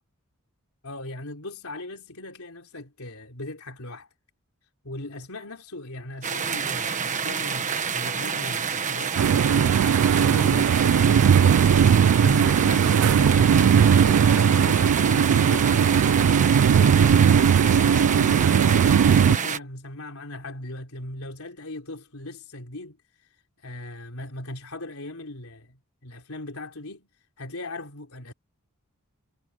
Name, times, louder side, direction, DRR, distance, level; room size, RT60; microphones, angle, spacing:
voice 1, 0.8-4.1 4.8-9.2 10.1-11.7 12.2-15.9 16.5-23.0 23.6-27.1 27.4-28.3, left 2 dB, 75° left, 3.9 m, -39 dB
sound 1, 6.2-19.6, right 6 dB, 35° right, 1.4 m, -28 dB
sound 2, 9.2-19.4, right 7 dB, 65° right, 0.3 m, -18 dB
head